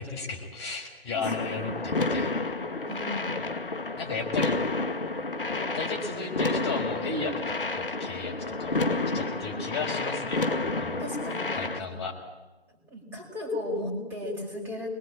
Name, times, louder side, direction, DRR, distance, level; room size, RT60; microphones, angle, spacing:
voice 1, 0.0-2.3 4.0-4.5 5.7-7.3 7.8-8.3 8.6-8.8 9.1-11.0 11.5-12.1, left 4 dB, 25° left, 2 dB, 5.4 m, -34 dB
voice 2, 1.1-1.6 2.9-3.4 9.4-9.5 11.0-11.4 11.8-11.9 12.9-15.0, left 1 dB, 5° right, -2 dB, 5.8 m, -35 dB
sound 1, 1.2-11.8, left 3 dB, 55° left, 2.0 m, -30 dB
28.5 x 22.5 x 8.8 m, 1.1 s
figure-of-eight pair, 145°, 32 cm